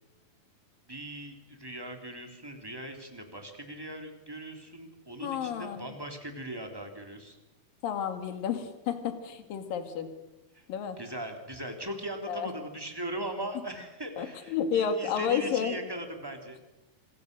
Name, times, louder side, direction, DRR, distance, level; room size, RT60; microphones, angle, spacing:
voice 1, 0.9-7.4 10.5-10.7 11.0-16.6, right 1 dB, 5° right, 4 dB, 2.6 m, -39 dB
voice 2, 5.2-6.0 7.8-10.1 10.7-11.0 12.3-12.5 14.2-15.7, left 7 dB, 70° left, 8 dB, 3.7 m, -31 dB
26.0 x 23.0 x 6.7 m, 1.0 s
omnidirectional pair, 4.3 m